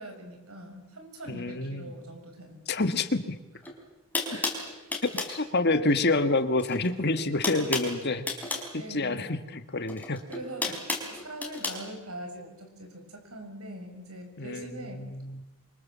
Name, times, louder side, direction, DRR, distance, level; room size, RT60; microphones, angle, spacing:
voice 1, 0.0-2.6 4.3-4.8 8.7-9.2 10.3-15.0, right 1 dB, 85° right, 5 dB, 6.7 m, -43 dB
voice 2, 1.3-1.9 2.7-3.3 5.3-8.3 8.7-10.2 14.4-15.4, left 2 dB, 50° left, 9 dB, 1.6 m, -28 dB
sound 1, 3.6-3.7 4.1-5.4 6.6-6.9 7.1-8.7 9.9-11.8, left 3 dB, 10° left, 4.7 m, -32 dB
28.0 x 25.0 x 7.5 m, 1.0 s
head